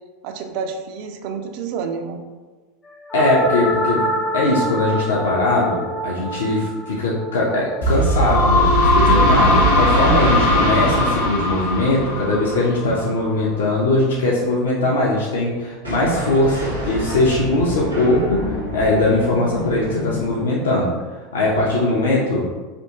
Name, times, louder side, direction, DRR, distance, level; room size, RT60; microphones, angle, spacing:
voice 1, 0.2-2.2, right 6 dB, 55° right, 6 dB, 0.4 m, -29 dB
voice 2, 3.1-4.1 4.3-22.5, left 2 dB, 70° left, -4 dB, 0.5 m, -20 dB
sound 1, 3.1-13.3, left 1 dB, 15° left, 0.5 m, -23 dB
sound 2, 7.8-13.4, equal, 85° left, 0.9 m, -20 dB
sound 3, 15.8-21.0, left 1 dB, 85° right, 0.7 m, -29 dB
3.4 x 2.7 x 2.7 m, 1.3 s
figure-of-eight pair, 80°, 0 cm